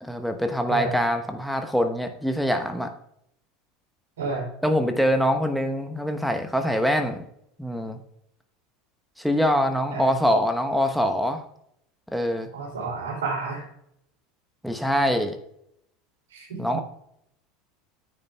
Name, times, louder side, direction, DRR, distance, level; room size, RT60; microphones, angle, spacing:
voice 1, 0.0-2.9 4.6-7.2 7.6-8.0 9.2-11.4 12.1-12.5 14.6-15.4 16.6-16.8, equal, ahead, 5 dB, 1.0 m, -24 dB
voice 2, 12.5-13.7 16.3-16.8, right 3 dB, 70° right, -1 dB, 3.2 m, -31 dB
14.5 x 8.6 x 2.3 m, 0.76 s
figure-of-eight pair, 75°, 0 cm